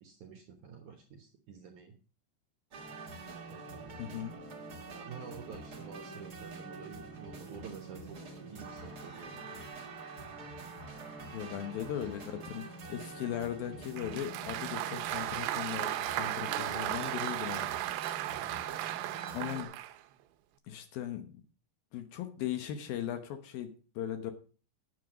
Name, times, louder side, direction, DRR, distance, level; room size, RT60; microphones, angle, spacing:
voice 1, 0.0-1.9 3.5-4.1 4.9-8.2 8.5-9.7 18.3-18.7, right 7 dB, 65° right, 4 dB, 2.0 m, -49 dB
sound 1, 2.7-19.6, right 3 dB, 50° right, 1.2 m, -46 dB
voice 2, 4.0-4.4 11.3-17.8 19.3-19.7 20.7-21.4 21.9-24.3, left 10 dB, 70° left, 8 dB, 2.6 m, -38 dB
Applause, 14.0-20.0, right 14 dB, 80° right, 2.8 m, -35 dB
9.5 x 8.3 x 6.0 m, 0.38 s
omnidirectional pair, 4.9 m